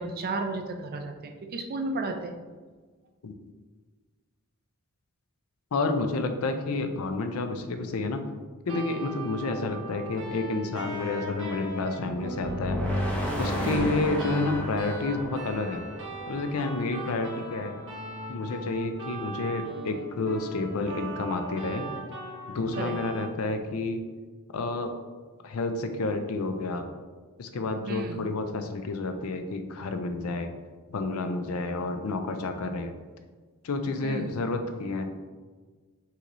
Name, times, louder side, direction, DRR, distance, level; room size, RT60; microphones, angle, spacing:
voice 1, 0.0-2.3 13.6-14.0 22.8-23.0 27.9-28.2 34.0-34.3, right 3 dB, 45° right, 4 dB, 0.4 m, -33 dB
voice 2, 5.7-8.2 8.7-12.8 13.4-15.8 16.3-17.8 18.3-21.9 22.5-24.0 24.5-24.9 25.4-26.9 27.4-30.5 30.9-32.9 33.6-35.3, left 3 dB, 75° left, 7 dB, 0.5 m, -30 dB
sound 1, 8.6-23.3, right 2 dB, 60° right, 1.1 m, -39 dB
sound 2, 12.4-16.5, equal, 5° left, 0.6 m, -32 dB
5.5 x 3.0 x 2.6 m, 1.4 s
head